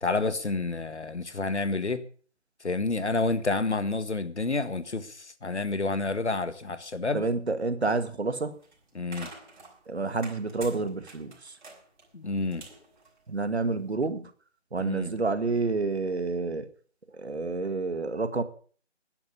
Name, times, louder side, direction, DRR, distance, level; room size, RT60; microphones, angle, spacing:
voice 1, 0.0-2.0 2.6-7.2 8.9-9.3 12.1-12.6 14.8-15.1, left 3 dB, 70° left, 1.8 m, -29 dB
voice 2, 7.1-8.5 9.9-11.5 13.3-14.3 14.7-16.7 17.1-18.4, right 3 dB, 65° right, 1.9 m, -29 dB
sound 1, 8.5-13.8, right 3 dB, 40° right, 5.6 m, -48 dB
12.5 x 10.5 x 6.9 m
figure-of-eight pair, 155°, 36 cm